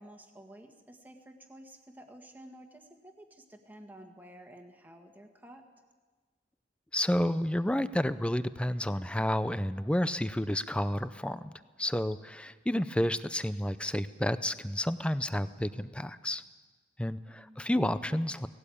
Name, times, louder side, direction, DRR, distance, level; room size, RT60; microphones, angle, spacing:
voice 1, 0.0-5.6 17.3-17.7, right 1 dB, 10° right, 4 dB, 1.7 m, -52 dB
voice 2, 6.9-11.5 11.8-16.4 17.0-18.5, left 1 dB, 5° left, 13 dB, 0.5 m, -30 dB
18.0 x 17.5 x 8.5 m, 1.4 s
head